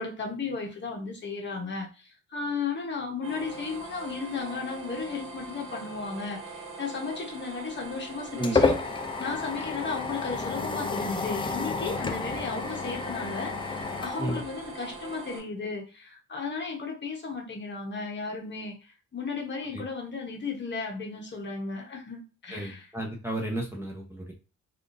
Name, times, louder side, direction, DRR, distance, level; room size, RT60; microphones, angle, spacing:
voice 1, 0.0-22.9, left 4 dB, 35° left, 1 dB, 1.0 m, -35 dB
sound 1, 3.2-15.4, right 3 dB, 90° right, 0.9 m, -42 dB
sound 2, 7.7-15.1, left 4 dB, 15° left, 0.4 m, -31 dB
voice 2, 22.5-24.3, right 1 dB, 10° right, -2 dB, 0.7 m, -32 dB
3.5 x 2.5 x 2.5 m, 0.33 s
cardioid pair, 90°, 30 cm